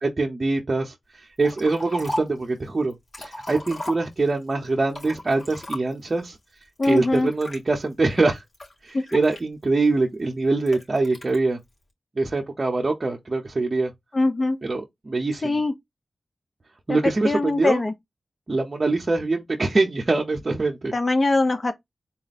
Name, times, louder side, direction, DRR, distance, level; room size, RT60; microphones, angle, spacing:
voice 1, 0.0-6.4 6.8-8.4 8.8-11.6 12.2-13.9 14.6-15.6 16.9-17.8 18.5-20.9, right 3 dB, 45° right, 0.8 m, -24 dB
Liquid, 1.4-2.4 2.9-4.4 4.9-6.1 6.8-7.6 8.2-9.9 10.7-11.4, left 1 dB, 55° left, 2.8 m, -36 dB
voice 2, 6.8-7.3 8.9-9.2 14.1-14.6 15.4-15.7 16.9-17.0 17.2-17.9 20.9-21.7, left 2 dB, 40° left, 0.9 m, -22 dB
4.2 x 2.1 x 4.1 m
cardioid pair, 60°, 0 cm